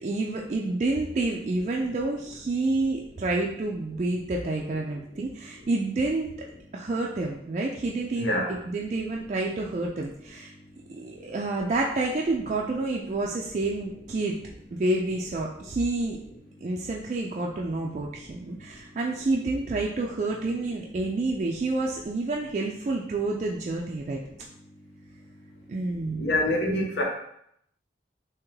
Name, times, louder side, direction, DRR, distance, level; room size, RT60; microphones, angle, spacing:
voice 1, 0.0-6.3 6.7-10.5 10.9-14.4 14.8-16.2 16.6-24.2 25.7-26.4, right 2 dB, 40° right, -1 dB, 0.3 m, -29 dB
voice 2, 8.2-8.5 26.2-27.0, left 1 dB, 75° left, -1 dB, 0.9 m, -25 dB
3.5 x 2.9 x 3.1 m, 0.72 s
head